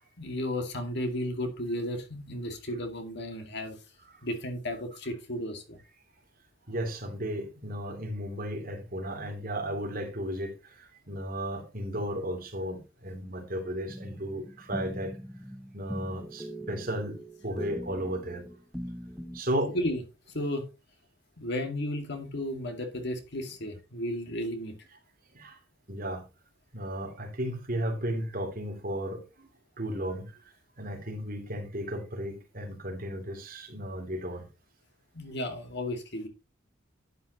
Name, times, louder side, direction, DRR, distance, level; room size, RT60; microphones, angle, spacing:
voice 1, 0.2-3.8 4.2-5.8 19.7-20.0 20.3-20.6 21.4-24.8 35.1-36.3, left 1 dB, 60° left, 2.2 m, -33 dB
voice 2, 6.7-10.5 11.1-15.1 15.7-17.2 17.4-18.4 19.3-19.7 25.3-25.6 25.9-26.2 26.7-29.5 29.8-30.3 30.8-34.5, equal, 45° right, 3.1 m, -34 dB
sound 1, 13.9-19.4, equal, ahead, 0.8 m, -41 dB
11.5 x 9.2 x 3.0 m
head